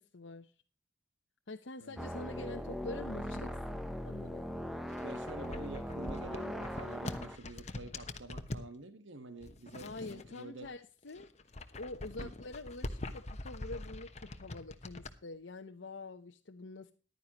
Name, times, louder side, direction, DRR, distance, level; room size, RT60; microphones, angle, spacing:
voice 1, 0.1-0.5 1.5-4.6 9.8-11.3 11.8-16.9, left 2 dB, 70° left, 3 dB, 0.9 m, -46 dB
voice 2, 1.8-2.2 5.0-10.7 12.2-12.3, right 2 dB, 75° right, 9 dB, 1.5 m, -48 dB
sound 1, 2.0-7.4, equal, ahead, 0.8 m, -40 dB
sound 2, 4.8-8.7 9.4-10.7 11.0-15.1, left 2 dB, 35° left, 1.1 m, -44 dB
15.0 x 11.5 x 3.0 m, 0.35 s
head